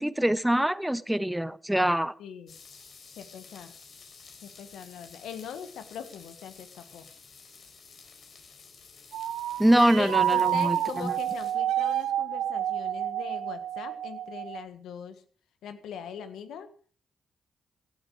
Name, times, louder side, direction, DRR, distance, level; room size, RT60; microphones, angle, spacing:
voice 1, 0.0-2.1 9.6-11.1, right 1 dB, 5° right, 0.8 m, -24 dB
voice 2, 2.2-2.6 3.2-3.7 4.4-7.0 9.8-15.2 15.6-16.7, left 8 dB, 80° left, 1.6 m, -41 dB
sound 1, 2.5-11.5, left 5 dB, 65° left, 4.3 m, -52 dB
sound 2, 9.1-14.6, right 11 dB, 85° right, 0.9 m, -29 dB
16.5 x 12.0 x 5.0 m
supercardioid pair, 45°, 0 cm